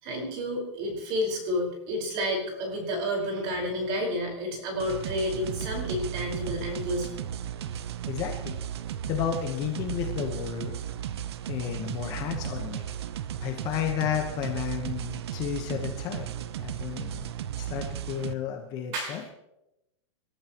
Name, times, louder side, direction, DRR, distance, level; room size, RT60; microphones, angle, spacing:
voice 1, 0.0-7.1 18.9-19.3, equal, 30° right, 1 dB, 5.1 m, -30 dB
sound 1, 4.8-18.3, right 10 dB, 55° right, 0.9 m, -35 dB
voice 2, 8.1-8.6 9.1-10.7 11.5-12.9 13.4-16.3 16.6-17.3 17.6-19.2, left 9 dB, 25° left, 3 dB, 1.2 m, -32 dB
28.0 x 13.5 x 3.1 m, 0.90 s
supercardioid pair, 170°, 16 cm